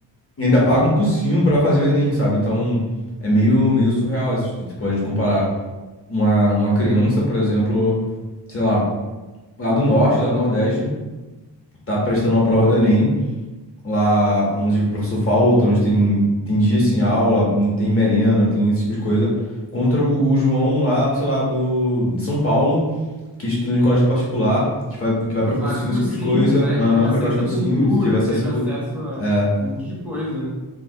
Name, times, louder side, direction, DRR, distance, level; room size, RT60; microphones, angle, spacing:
voice 1, 0.4-2.8 3.2-5.5 6.1-7.9 8.5-8.9 9.6-10.9 11.9-13.1 13.8-19.3 19.7-22.8 23.4-24.7 25.0-28.2 28.5-28.6 29.2-29.5, equal, 30° left, -5 dB, 0.7 m, -19 dB
voice 2, 25.4-29.3 29.6-30.5, left 2 dB, 5° right, -5 dB, 0.5 m, -26 dB
3.3 x 2.0 x 2.6 m, 1.2 s
wide cardioid pair, 160°, 45 cm